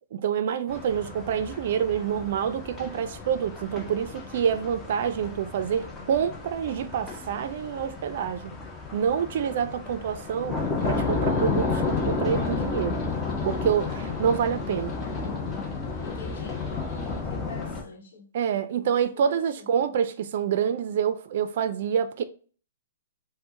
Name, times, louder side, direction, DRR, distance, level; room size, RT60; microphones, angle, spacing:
voice 1, 0.1-8.6 8.9-13.0 13.4-15.0 18.3-22.2, right 8 dB, 60° right, 0.4 m, -27 dB
sound 1, 0.7-17.8, left 4 dB, 15° left, 0.6 m, -32 dB
Livestock farm animals working animals, 10.8-17.2, left 3 dB, 35° left, 0.9 m, -49 dB
voice 2, 16.0-16.7 17.3-18.3 18.8-20.0, left 4 dB, 70° left, 1.0 m, -45 dB
4.2 x 2.1 x 2.8 m
hypercardioid pair, 135°, 0 cm